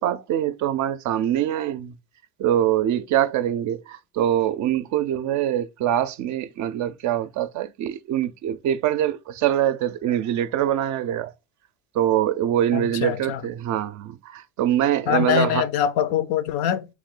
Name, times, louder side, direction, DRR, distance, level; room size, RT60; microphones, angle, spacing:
voice 1, 0.0-1.9 2.4-11.3 11.9-15.6, right 11 dB, 50° right, 0.5 m, -24 dB
voice 2, 12.7-13.4 15.1-16.9, left 9 dB, 65° left, 0.6 m, -23 dB
3.2 x 3.1 x 3.6 m
supercardioid pair, 85°, 39 cm